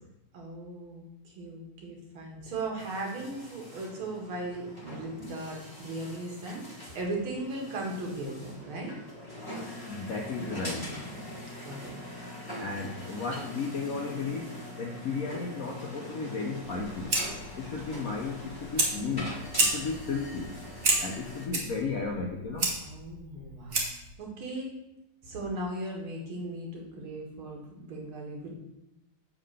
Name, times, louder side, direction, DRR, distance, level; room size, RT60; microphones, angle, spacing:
voice 1, 0.3-8.9 10.4-11.4 11.6-11.9 14.2-14.3 22.8-23.9 24.2-24.8 25.2-28.5, right 2 dB, 70° right, 0 dB, 2.5 m, -38 dB
sound 1, 2.8-21.5, left 1 dB, 15° left, 1.1 m, -43 dB
voice 2, 9.9-11.0 12.6-17.3 17.5-20.6 21.0-22.8, left 4 dB, 75° left, 1 dB, 0.8 m, -34 dB
Fire, 16.6-24.1, right 2 dB, 45° right, 1.5 m, -32 dB
7.6 x 3.7 x 6.4 m, 0.88 s
omnidirectional pair, 2.4 m